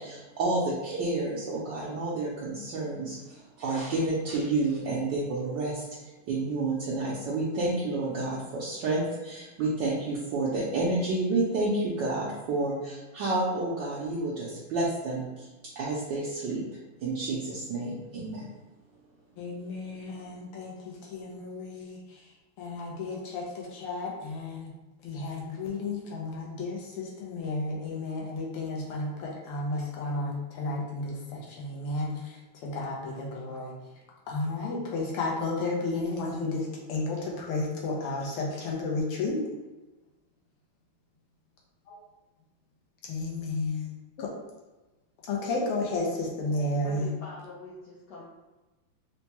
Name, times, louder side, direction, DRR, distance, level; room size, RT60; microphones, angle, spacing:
voice 1, 0.0-16.6 17.0-18.5, right 2 dB, 70° right, -5 dB, 1.1 m, -30 dB
voice 2, 19.4-22.2 22.6-24.7 25.0-33.7 34.3-39.4 43.0-43.9 45.3-47.2, left 2 dB, 90° left, -2 dB, 1.7 m, -32 dB
voice 3, 46.8-48.2, left 2 dB, 75° left, -6 dB, 1.0 m, -44 dB
4.4 x 2.2 x 2.8 m, 1.1 s
omnidirectional pair, 2.4 m